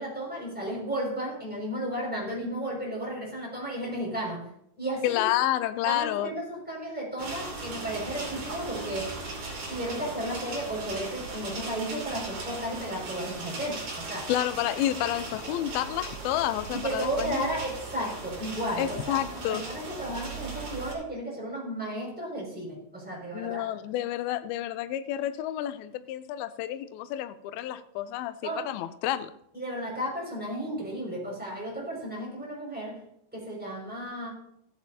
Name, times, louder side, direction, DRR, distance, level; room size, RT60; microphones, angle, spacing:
voice 1, 0.0-4.4 4.8-5.2 5.8-9.2 9.7-14.3 16.7-23.7 27.7-27.8 28.4-28.6 29.5-33.0 33.3-34.3, right 1 dB, ahead, -4 dB, 5.3 m, -34 dB
voice 2, 5.0-6.3 14.3-17.5 18.8-19.6 23.3-28.4 28.7-29.3, left 13 dB, 80° left, 11 dB, 2.2 m, -30 dB
sound 1, 7.2-20.9, right 3 dB, 50° right, 3.8 m, -38 dB
16.5 x 10.5 x 2.8 m, 0.72 s
omnidirectional pair, 4.9 m